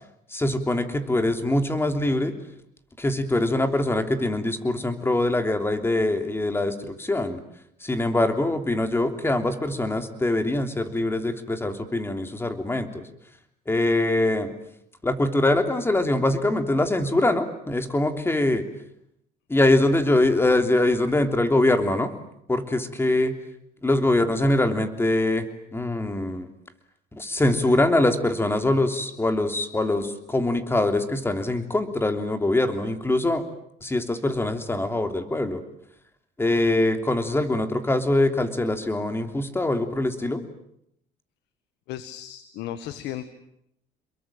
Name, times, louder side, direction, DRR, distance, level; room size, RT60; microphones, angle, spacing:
voice 1, 0.3-2.3 3.0-7.4 7.8-13.0 13.7-14.5 15.0-18.6 19.5-22.1 22.5-23.3 23.8-26.5 27.1-33.4 33.8-35.6 36.4-40.4, left 2 dB, 15° left, 7 dB, 3.3 m, -23 dB
voice 2, 41.9-43.3, left 11 dB, 85° left, 12 dB, 1.7 m, -35 dB
28.5 x 22.5 x 8.9 m, 0.76 s
cardioid pair, 110°, 17 cm